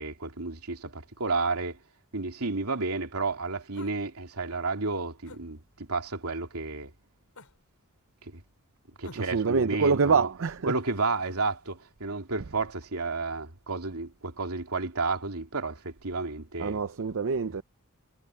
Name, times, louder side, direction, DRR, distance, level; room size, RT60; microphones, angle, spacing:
voice 1, 0.0-1.8 2.1-6.9 8.2-8.4 9.0-10.3 10.6-16.8, right 3 dB, 85° right, 3.0 m, -31 dB
sound 1, 3.7-4.0 5.2-5.4 7.3-7.8 9.0-9.4, left 3 dB, 75° left, 5.2 m, -49 dB
voice 2, 9.1-10.8 16.6-17.6, right 5 dB, 65° right, 0.6 m, -26 dB
head